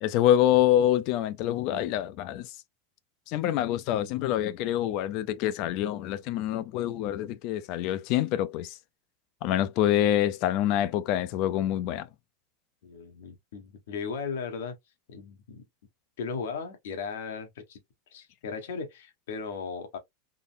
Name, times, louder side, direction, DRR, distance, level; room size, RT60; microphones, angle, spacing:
voice 1, 0.0-2.5 3.3-8.7 9.4-12.1, left 12 dB, 55° left, 0.4 m, -26 dB
voice 2, 12.8-14.7 15.1-15.6 16.2-17.8 18.1-20.0, left 5 dB, 80° left, 1.1 m, -36 dB
3.8 x 2.0 x 2.5 m
supercardioid pair, 130°, 0 cm